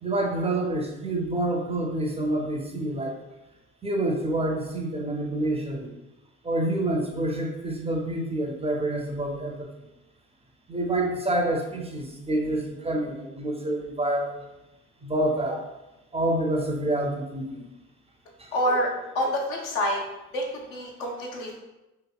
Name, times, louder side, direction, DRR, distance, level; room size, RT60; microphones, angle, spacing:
voice 1, 0.0-3.1 3.8-5.9 6.4-9.7 10.7-14.4 15.0-15.6 16.1-17.6 18.4-18.5, right 1 dB, 15° right, 1 dB, 0.4 m, -27 dB
voice 2, 18.5-20.0 20.3-21.6, equal, 80° left, -1 dB, 0.6 m, -27 dB
2.9 x 2.7 x 2.3 m, 1.0 s
hypercardioid pair, 45°, 40 cm